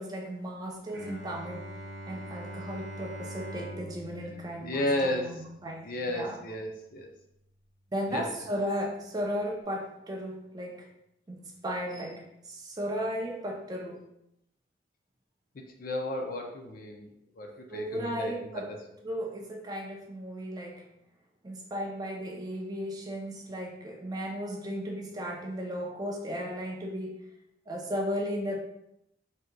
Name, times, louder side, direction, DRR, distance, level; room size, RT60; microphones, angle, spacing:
voice 1, 0.0-1.7 2.1-6.4 7.9-10.9 11.3-14.1 17.7-18.7 19.0-20.9 21.4-27.3 27.7-28.6, equal, 20° right, 0 dB, 0.4 m, -35 dB
Bowed string instrument, 0.9-6.6, right 1 dB, 80° right, 0.6 m, -43 dB
voice 2, 4.6-5.3 5.8-7.1 8.1-8.3 15.5-18.8, left 1 dB, 50° left, 2 dB, 0.4 m, -33 dB
3.5 x 2.8 x 2.2 m, 0.81 s
head